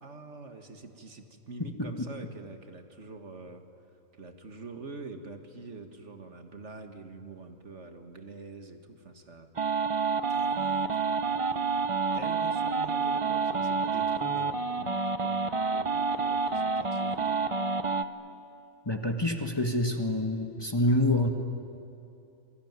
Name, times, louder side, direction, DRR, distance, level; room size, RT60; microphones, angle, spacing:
voice 1, 0.0-3.6 4.2-9.5 10.3-11.6 12.1-17.4, right 3 dB, 55° right, 6 dB, 2.0 m, -45 dB
sound 1, 9.6-18.0, right 4 dB, 30° right, 0.7 m, -28 dB
voice 2, 18.8-21.3, left 1 dB, 20° left, 4 dB, 1.5 m, -26 dB
27.0 x 22.5 x 9.6 m, 2.7 s
omnidirectional pair, 1.5 m